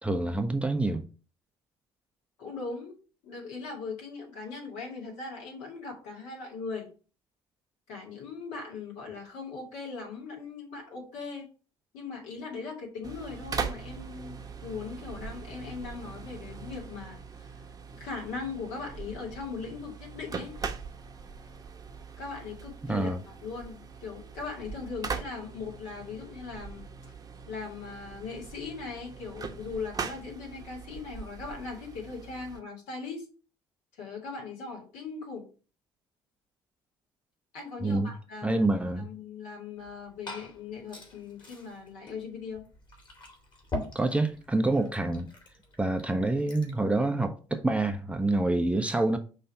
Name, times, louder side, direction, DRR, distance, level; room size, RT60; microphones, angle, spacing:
voice 1, 0.0-1.1 22.9-23.2 37.8-38.1 38.4-39.1 43.9-45.3 45.8-49.2, right 2 dB, 10° right, 0.7 m, -27 dB
voice 2, 2.4-3.0 3.2-6.9 7.9-11.5 11.9-17.5 18.0-20.6 22.2-26.9 27.5-33.3 34.0-35.5 37.5-38.7 39.0-42.6, left 4 dB, 65° left, 2.4 m, -39 dB
sound 1, 13.0-32.6, right 5 dB, 25° right, 1.0 m, -41 dB
Glass / Fill (with liquid), 39.8-46.8, left 1 dB, 35° left, 2.5 m, -43 dB
5.4 x 3.3 x 5.6 m
figure-of-eight pair, 55°, 13 cm